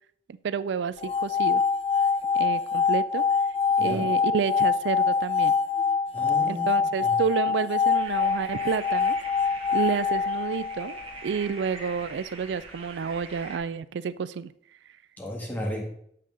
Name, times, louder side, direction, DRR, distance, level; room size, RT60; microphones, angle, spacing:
voice 1, 0.4-1.6 2.3-3.2 3.8-5.5 6.5-9.2 9.7-14.5, right 6 dB, 85° right, 16 dB, 0.3 m, -30 dB
sound 1, 1.0-11.1, left 5 dB, 35° left, 0.4 m, -25 dB
voice 2, 6.1-7.1 15.2-15.8, equal, 10° left, -1 dB, 1.6 m, -34 dB
sound 2, 8.0-13.6, right 3 dB, 30° right, 1.4 m, -43 dB
6.7 x 5.7 x 6.2 m, 0.69 s
head